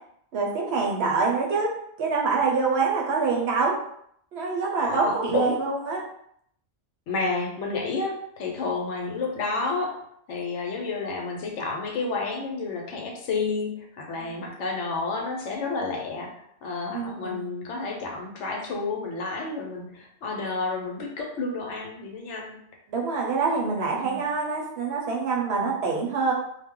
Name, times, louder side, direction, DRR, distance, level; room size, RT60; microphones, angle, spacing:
voice 1, 0.3-1.7 2.0-3.7 4.3-6.0 14.2-14.3 16.9-17.4 22.9-26.3, right 4 dB, 65° right, -2 dB, 0.8 m, -25 dB
voice 2, 4.8-5.6 7.1-10.0 10.3-16.3 16.6-22.6 24.0-24.2, left 3 dB, 70° left, 0 dB, 0.9 m, -30 dB
2.3 x 2.1 x 3.6 m, 0.70 s
omnidirectional pair, 1.3 m